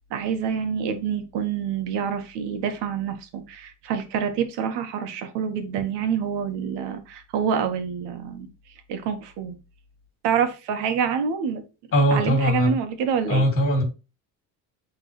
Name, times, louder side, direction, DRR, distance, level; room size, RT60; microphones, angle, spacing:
voice 1, 0.1-8.5 8.9-9.5 10.2-11.6 12.1-13.5, right 7 dB, 75° right, 1.5 m, -27 dB
voice 2, 11.9-12.7 13.3-13.8, equal, 30° left, 2.6 m, -20 dB
9.4 x 3.7 x 3.1 m
cardioid pair, 180°, 41 cm